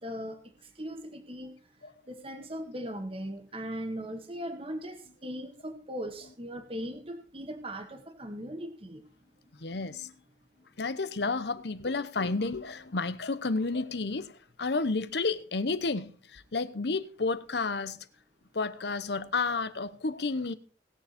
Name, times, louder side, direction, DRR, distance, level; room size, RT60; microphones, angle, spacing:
voice 1, 0.0-0.4 0.8-1.5 2.1-9.0, equal, 30° right, 1.7 m, -39 dB
voice 2, 9.6-10.1 10.8-18.1 18.5-20.5, left 3 dB, 70° left, 0.9 m, -31 dB
19.5 x 7.0 x 4.3 m
head